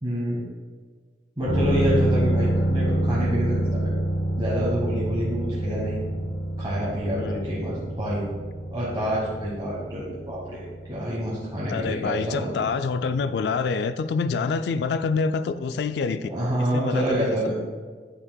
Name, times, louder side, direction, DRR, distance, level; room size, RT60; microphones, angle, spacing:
voice 1, 0.0-0.4 1.4-3.9 4.4-6.0 6.6-8.3 8.7-12.6 16.3-17.5, equal, 25° right, -8 dB, 1.2 m, -27 dB
sound 1, 1.4-13.0 13.3-13.4, right 1 dB, 85° left, 1.9 m, -27 dB
voice 2, 7.2-7.5 11.7-16.3 16.6-17.5, left 5 dB, 70° left, 11 dB, 0.3 m, -27 dB
9.4 x 6.1 x 2.2 m, 1.5 s
head